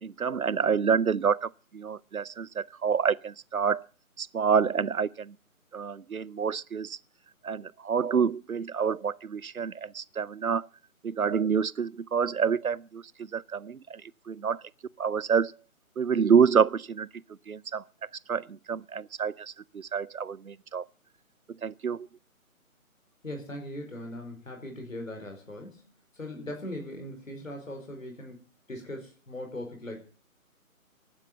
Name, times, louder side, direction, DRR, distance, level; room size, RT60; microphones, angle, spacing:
voice 1, 0.0-3.8 4.2-5.4 5.7-7.0 7.4-10.7 11.0-14.0 14.3-14.6 15.0-15.5 16.0-17.1 17.5-17.8 18.3-20.8 21.6-22.1, right 6 dB, 75° right, 0.7 m, -27 dB
voice 2, 23.2-25.9 26.1-30.0, left 1 dB, 65° left, 4.8 m, -40 dB
14.5 x 11.0 x 7.8 m
figure-of-eight pair, 150°, 43 cm